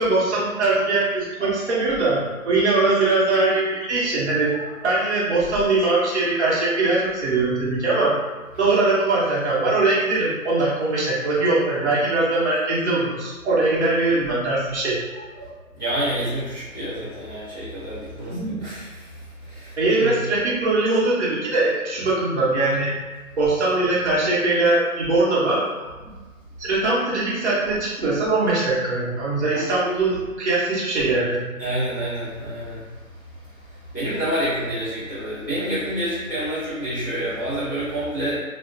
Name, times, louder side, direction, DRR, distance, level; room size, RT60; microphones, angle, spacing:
voice 1, 0.0-8.2 8.6-15.6 18.2-18.6 19.8-22.9 23.4-26.1 26.6-31.5, right 2 dB, 50° right, -7 dB, 1.0 m, -21 dB
voice 2, 15.8-18.8 19.4-19.7 20.0-20.2 31.6-32.8 33.9-38.4, right 1 dB, 15° left, -13 dB, 0.6 m, -28 dB
2.5 x 2.1 x 2.4 m, 1.3 s
figure-of-eight pair, 160°, 43 cm